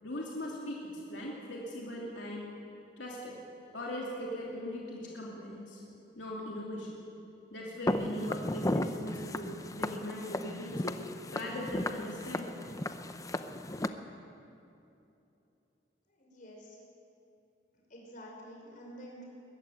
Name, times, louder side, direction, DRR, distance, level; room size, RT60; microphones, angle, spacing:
voice 1, 0.0-2.5 3.0-3.4 3.7-5.8 6.1-7.0 7.5-11.0 11.3-12.6, left 1 dB, 85° left, -3 dB, 3.0 m, -39 dB
Walk footsteps, 7.9-13.9, left 1 dB, 20° left, 0.8 m, -35 dB
voice 2, 16.1-16.8 17.9-19.3, equal, 50° left, -2 dB, 6.1 m, -49 dB
21.5 x 14.5 x 9.4 m, 2.8 s
head